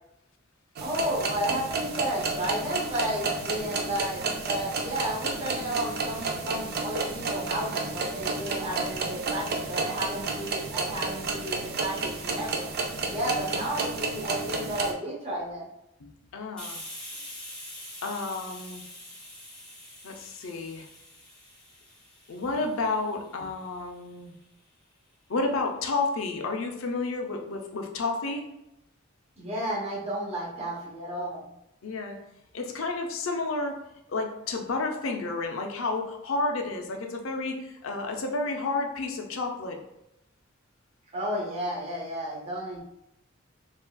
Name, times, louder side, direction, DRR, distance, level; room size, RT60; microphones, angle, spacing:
voice 1, 0.8-12.7 13.1-15.6 29.4-31.5 41.1-42.8, right 1 dB, 30° right, -5 dB, 0.9 m, -32 dB
sound 1, 0.8-14.9, right 3 dB, 50° right, 0.4 m, -31 dB
voice 2, 16.0-16.8 18.0-18.8 20.0-20.9 22.3-24.3 25.3-28.5 31.8-32.2 32.5-33.8 34.1-39.8, left 3 dB, 70° left, 3 dB, 0.5 m, -31 dB
Hiss, 16.6-24.0, left 1 dB, 5° left, 0.9 m, -45 dB
3.7 x 2.4 x 2.2 m, 0.86 s
head